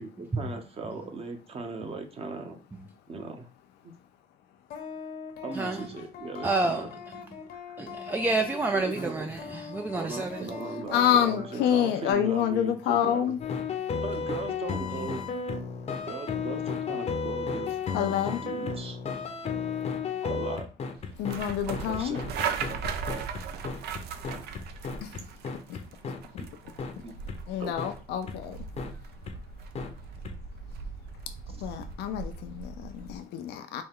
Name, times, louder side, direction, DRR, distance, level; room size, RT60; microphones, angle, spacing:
voice 1, 0.0-2.6 3.1-3.5 5.4-6.9 7.5-7.8 8.7-9.3 9.9-13.4 14.0-15.3 16.1-19.2 20.2-20.7 21.9-22.3 26.4-26.5 27.0-27.2 27.6-27.8 31.5-31.7, right 4 dB, 35° right, 0.9 m, -38 dB
sound 1, 4.7-12.1, left 7 dB, 65° left, 0.9 m, -42 dB
voice 2, 6.4-6.8 7.8-10.5, right 3 dB, 10° right, 0.3 m, -29 dB
voice 3, 10.9-13.4 17.9-18.4 21.2-22.2 25.0-25.2 27.5-28.6 31.6-33.8, left 9 dB, 80° left, 0.5 m, -27 dB
sound 2, 13.4-26.5 26.8-26.9 27.3-27.4 27.8-27.9 28.3-28.4 28.8-28.9 29.3-29.4 29.7-29.9 30.2-30.3, left 5 dB, 40° left, 0.7 m, -33 dB
sound 3, 21.0-33.2, right 6 dB, 70° right, 0.5 m, -38 dB
4.1 x 2.2 x 3.6 m
cardioid pair, 110°, 17 cm